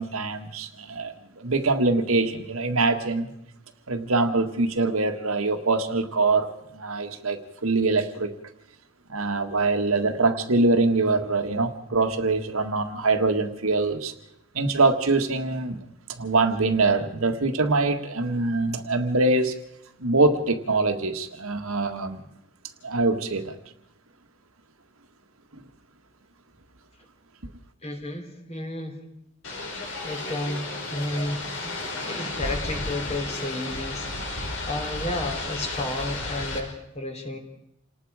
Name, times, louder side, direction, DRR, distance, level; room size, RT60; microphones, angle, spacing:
voice 1, 0.0-3.3 3.9-6.5 6.7-8.3 9.1-14.1 14.5-15.8 16.1-19.5 20.0-22.2 22.8-23.6, right 3 dB, 80° right, 1.7 m, -24 dB
voice 2, 27.8-29.0 29.8-31.4 31.6-37.4, left 1 dB, 30° left, 3.1 m, -32 dB
sound 1, 29.4-36.6, left 2 dB, 70° left, 5.5 m, -33 dB
28.5 x 19.0 x 4.9 m
head